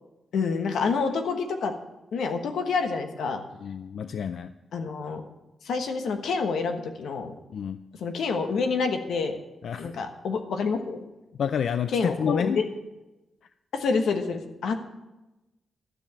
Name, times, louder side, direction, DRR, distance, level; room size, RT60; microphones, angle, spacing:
voice 1, 0.3-1.7 2.1-3.4 4.7-5.2 5.6-7.3 8.0-9.4 9.8-11.0 11.9-12.6 13.7-14.7, left 4 dB, 90° left, 6 dB, 1.3 m, -27 dB
voice 2, 3.6-4.5 7.5-7.8 9.6-9.9 11.4-12.6, left 7 dB, 60° left, 11 dB, 0.4 m, -29 dB
12.5 x 7.2 x 7.2 m, 1.0 s
wide cardioid pair, 170°, 0 cm